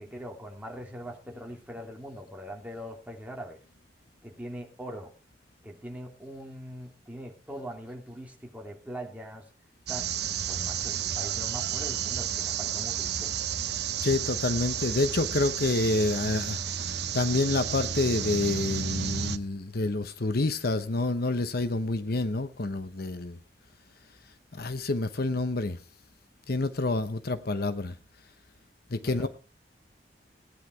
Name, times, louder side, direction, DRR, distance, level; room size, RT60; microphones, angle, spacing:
voice 1, 0.0-3.6 4.2-5.1 5.6-9.5 9.9-10.2 10.5-13.3 29.0-29.3, equal, 10° right, 2.9 m, -41 dB
sound 1, 9.9-19.4, right 8 dB, 70° right, 0.9 m, -32 dB
voice 2, 14.0-16.6 17.1-23.4 24.5-25.8 26.5-27.9 28.9-29.3, left 2 dB, 60° left, 1.0 m, -28 dB
17.5 x 9.9 x 4.6 m
head